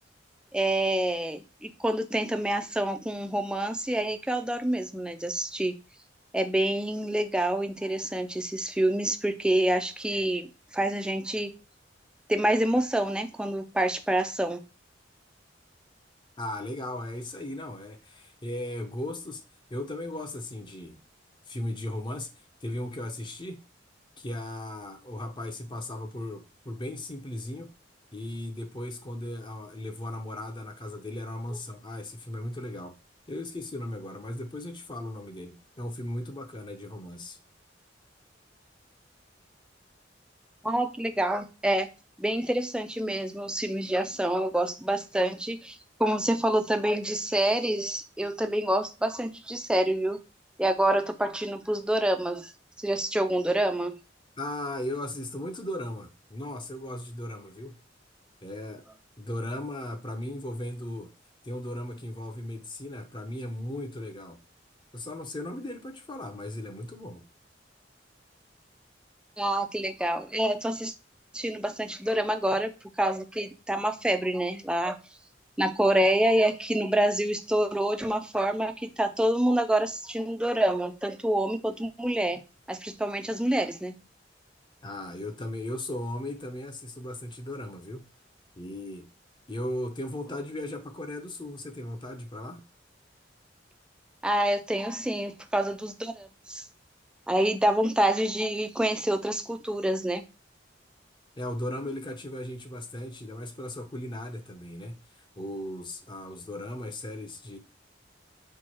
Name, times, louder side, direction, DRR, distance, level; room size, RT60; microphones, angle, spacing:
voice 1, 0.5-5.7 6.3-10.5 10.7-11.5 12.3-14.6 40.6-41.9 42.2-50.2 50.6-52.5 52.8-54.0 69.4-70.9 71.3-72.7 73.0-75.0 75.6-82.4 82.7-84.0 94.2-96.6 97.3-100.2, right 1 dB, 5° right, 0.4 m, -27 dB
voice 2, 16.4-19.4 19.7-21.0 21.5-22.3 22.6-23.6 24.2-27.7 28.1-33.0 33.3-37.4 54.4-57.8 58.4-58.9 59.2-61.1 61.4-64.4 64.9-67.3 84.8-88.1 88.6-89.1 89.5-92.6 101.4-107.6, left 1 dB, 25° left, 0.7 m, -37 dB
4.5 x 2.3 x 4.4 m
head